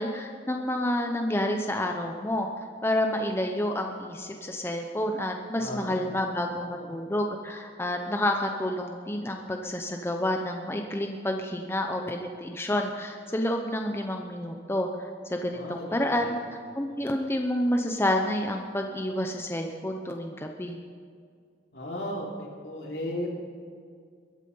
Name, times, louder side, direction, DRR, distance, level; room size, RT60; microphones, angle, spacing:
voice 1, 0.0-2.5 2.8-16.4 16.8-20.8, left 1 dB, 15° left, 3 dB, 0.7 m, -29 dB
voice 2, 5.6-6.3 6.7-6.9 15.5-16.4 16.9-17.0 21.7-23.4, left 1 dB, 70° left, -2 dB, 3.1 m, -36 dB
22.0 x 9.0 x 5.5 m, 2.1 s
head